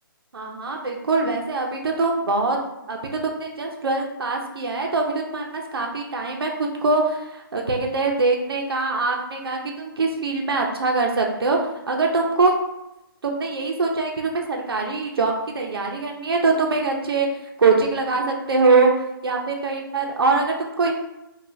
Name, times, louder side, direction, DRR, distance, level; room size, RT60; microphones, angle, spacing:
voice 1, 0.3-2.6 2.9-11.6 11.9-12.5 13.2-17.3 17.6-18.9 19.2-20.9, right 3 dB, 90° right, 1 dB, 0.7 m, -23 dB
5.4 x 2.4 x 2.7 m, 0.91 s
hypercardioid pair, 160°, 12 cm